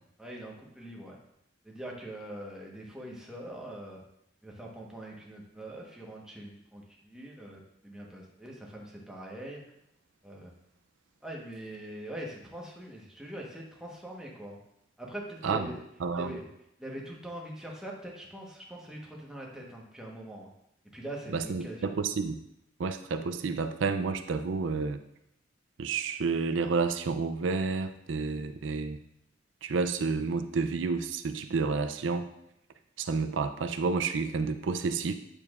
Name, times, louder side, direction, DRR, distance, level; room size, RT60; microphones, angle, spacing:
voice 1, 0.2-1.2 1.6-4.0 4.4-9.7 10.2-10.5 11.2-14.6 15.0-15.8 16.1-16.5 16.8-20.5 20.9-21.9, right 1 dB, 5° right, -2 dB, 1.1 m, -43 dB
voice 2, 16.0-16.3 21.3-22.4 22.8-25.0 25.8-29.0 29.6-32.3 33.0-35.1, right 4 dB, 90° right, 8 dB, 0.4 m, -30 dB
8.5 x 6.9 x 2.4 m, 0.78 s
head